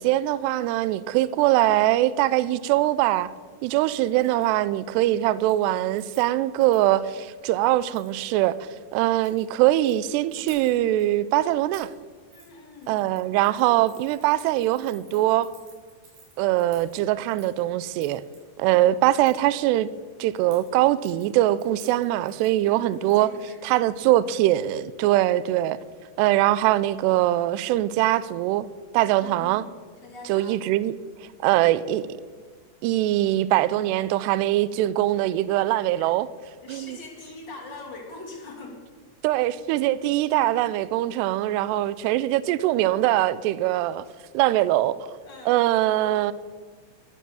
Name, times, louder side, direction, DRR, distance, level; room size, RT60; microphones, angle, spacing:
voice 1, 0.0-3.3 3.6-8.6 8.9-11.9 12.9-15.5 16.4-18.2 18.6-19.9 20.2-23.3 23.6-25.8 26.2-28.7 28.9-29.6 30.3-30.9 31.4-32.0 32.8-36.3 36.7-37.0 39.2-44.1 44.3-45.1 45.5-46.3, right 14 dB, 90° right, 2.4 m, -22 dB
voice 2, 3.9-4.3 12.3-13.0 22.7-23.9 29.2-29.7 30.0-30.8 36.6-38.8 45.2-45.5, left 3 dB, 35° left, 2.1 m, -43 dB
Keys jangling, 4.2-4.5 4.8-5.1 5.4-7.0 7.8-8.1 9.0-9.9 10.3-11.0 11.7-12.0 12.3-12.5 12.8-18.4 19.2-19.5 20.4-23.4 23.7-23.8, right 4 dB, 65° right, 6.1 m, -53 dB
13.5 x 11.5 x 7.1 m
omnidirectional pair, 5.4 m